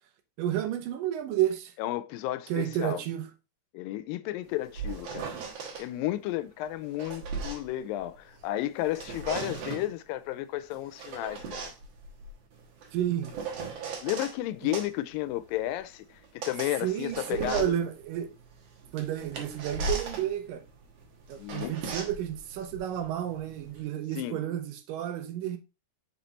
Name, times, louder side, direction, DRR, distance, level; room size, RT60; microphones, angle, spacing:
voice 1, 0.4-1.7 2.5-3.3 12.9-13.3 14.6-14.7 16.8-18.3 18.9-20.6 21.3-25.6, right 11 dB, 80° right, 2.4 m, -31 dB
voice 2, 1.8-3.0 3.7-5.4 5.8-11.7 14.0-17.7 21.4-21.7 24.2-24.4, left 14 dB, 85° left, 2.3 m, -33 dB
sound 1, 4.5-5.9 6.7-8.5 8.8-9.9 10.7-14.4 14.7-23.8, right 4 dB, 60° right, 2.1 m, -38 dB
5.7 x 4.3 x 4.0 m
omnidirectional pair, 3.9 m